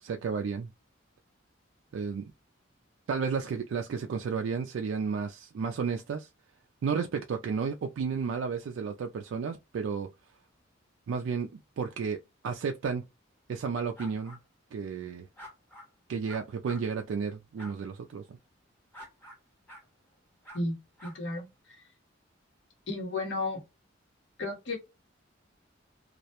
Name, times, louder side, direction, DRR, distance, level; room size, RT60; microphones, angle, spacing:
voice 1, 0.0-0.7 1.9-2.3 3.1-6.3 6.8-10.1 11.1-13.0 13.5-14.4 14.7-15.3 16.1-18.4, right 5 dB, 75° right, 0.3 m, -32 dB
sound 1, 14.0-14.4 15.4-15.9 16.3-16.8 17.6-17.7 18.9-19.4 19.7-19.9 20.4-20.6 21.0-21.1, equal, 10° left, 0.8 m, -47 dB
voice 2, 21.0-21.5 22.9-23.6 24.4-24.8, left 2 dB, 65° left, 1.0 m, -32 dB
2.3 x 2.1 x 2.8 m
head